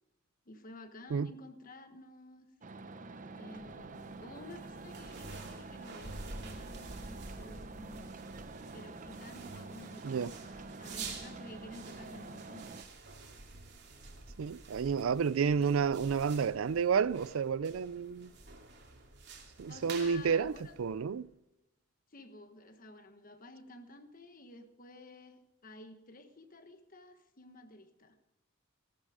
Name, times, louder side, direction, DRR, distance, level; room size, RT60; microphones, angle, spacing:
voice 1, 0.4-2.5 3.4-8.2 8.7-12.8 14.3-14.4 15.3-16.1 19.7-20.7 22.1-28.2, left 1 dB, 45° left, 1.3 m, -52 dB
sound 1, 2.6-12.8, right 3 dB, 40° right, 0.7 m, -47 dB
sound 2, 3.4-21.3, right 3 dB, 55° right, 2.4 m, -49 dB
voice 2, 14.4-18.3 19.6-20.5 20.8-21.3, right 6 dB, 80° right, 0.4 m, -30 dB
17.0 x 11.5 x 5.0 m
head